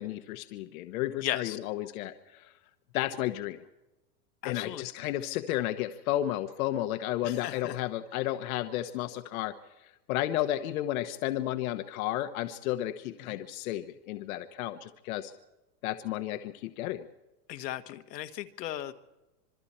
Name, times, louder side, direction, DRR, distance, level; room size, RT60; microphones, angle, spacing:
voice 1, 0.0-2.5 2.9-3.6 4.4-9.5 10.1-15.3 15.8-17.0, left 13 dB, 55° left, 8 dB, 1.2 m, -32 dB
voice 2, 1.2-1.6 4.4-4.9 7.2-7.8 13.2-13.4 17.5-18.9, left 13 dB, 75° left, 8 dB, 1.6 m, -36 dB
26.5 x 22.5 x 4.4 m, 0.99 s
supercardioid pair, 145°, 49 cm